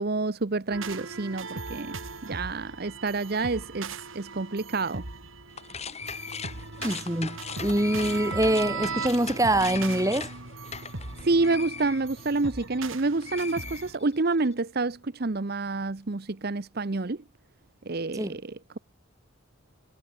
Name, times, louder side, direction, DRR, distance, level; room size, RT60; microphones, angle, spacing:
voice 1, 0.0-1.9 2.2-5.0 11.2-17.2 17.9-18.8, right 3 dB, 50° right, 0.8 m, -28 dB
sound 1, 0.7-14.0, right 3 dB, 75° right, 3.0 m, -38 dB
sound 2, 5.5-12.9 13.2-14.4, left 6 dB, 30° left, 7.0 m, -40 dB
voice 2, 6.8-10.3 18.1-18.4, right 1 dB, 15° right, 2.3 m, -25 dB
head